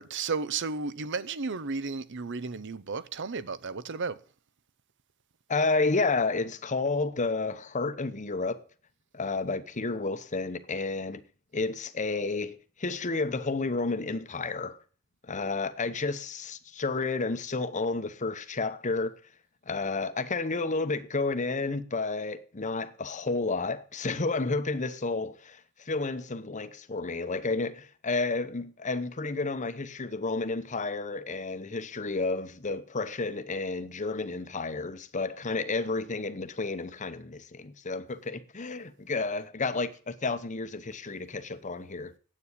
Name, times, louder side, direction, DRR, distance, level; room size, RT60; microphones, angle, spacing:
voice 1, 0.0-4.2, right 4 dB, 55° right, 0.8 m, -33 dB
voice 2, 5.5-8.6 9.1-11.2 11.5-14.8 15.2-19.2 19.7-42.1, left 3 dB, 35° left, 0.9 m, -31 dB
9.7 x 8.6 x 8.2 m
head